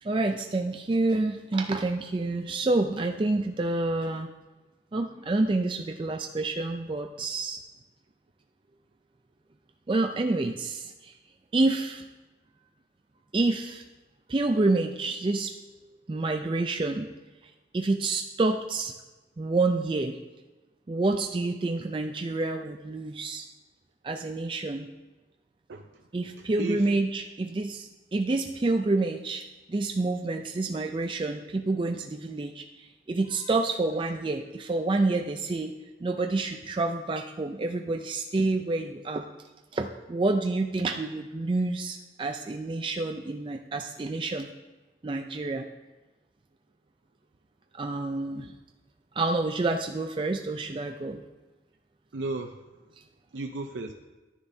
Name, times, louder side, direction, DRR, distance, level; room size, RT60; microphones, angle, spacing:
voice 1, 0.0-4.3 4.9-7.6 9.9-11.2 11.5-12.0 13.3-13.8 14.3-15.6 16.1-17.1 17.7-18.9 19.4-20.2 20.9-23.5 24.0-24.9 26.1-35.7 36.0-39.3 39.7-44.5 45.0-45.7 47.7-48.5 49.1-51.2, right 2 dB, 25° right, 4 dB, 0.4 m, -28 dB
voice 2, 25.7-26.1 26.4-26.9 52.1-52.9 53.3-53.9, right 3 dB, 85° right, 4 dB, 0.6 m, -35 dB
11.5 x 10.0 x 2.7 m, 1.2 s
head